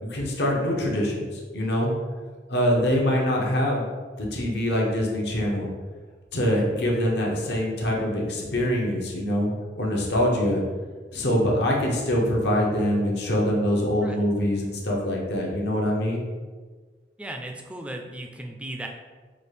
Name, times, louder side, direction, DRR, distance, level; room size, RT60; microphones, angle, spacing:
voice 1, 0.0-1.9 2.5-3.9 4.2-5.7 6.3-10.6 11.1-16.2, equal, 70° left, -2 dB, 0.9 m, -24 dB
voice 2, 17.2-18.9, right 1 dB, 5° right, 2 dB, 0.3 m, -36 dB
5.0 x 2.4 x 3.3 m, 1.4 s
head